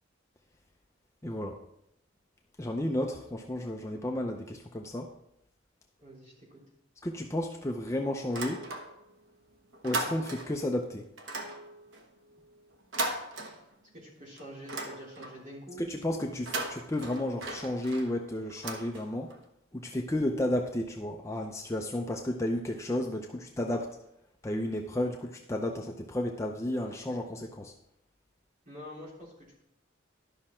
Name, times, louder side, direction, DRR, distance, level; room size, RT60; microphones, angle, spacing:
voice 1, 1.2-1.6 2.6-5.1 7.0-8.7 9.8-11.1 15.8-19.3 19.7-24.0 24.4-27.7, left 1 dB, 15° left, 2 dB, 0.6 m, -32 dB
voice 2, 6.0-6.6 13.9-15.9 28.6-29.6, equal, 40° right, -5 dB, 3.3 m, -47 dB
sound 1, 8.2-9.2 9.5-10.7 11.2-14.0 14.4-15.5 16.3-19.4, right 2 dB, 70° right, 1.2 m, -38 dB
12.0 x 6.0 x 4.4 m, 0.79 s
head